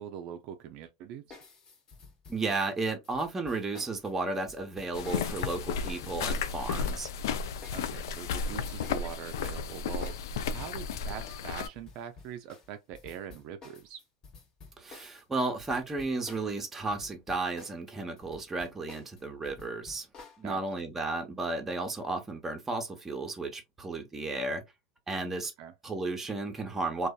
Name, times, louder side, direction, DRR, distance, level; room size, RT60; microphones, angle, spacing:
voice 1, 0.0-1.4 7.7-14.0 20.4-20.6 25.6-25.7, right 9 dB, 55° right, 0.4 m, -43 dB
sound 1, 1.3-16.6 16.9-20.4, left 4 dB, 35° left, 1.0 m, -52 dB
voice 2, 2.3-7.1 14.8-20.1 20.4-24.6 25.1-25.5 25.8-27.1, right 3 dB, 15° right, 0.8 m, -33 dB
sound 2, 4.9-11.7, left 6 dB, 80° left, 0.3 m, -33 dB
2.6 x 2.3 x 2.3 m
hypercardioid pair, 105°, 2 cm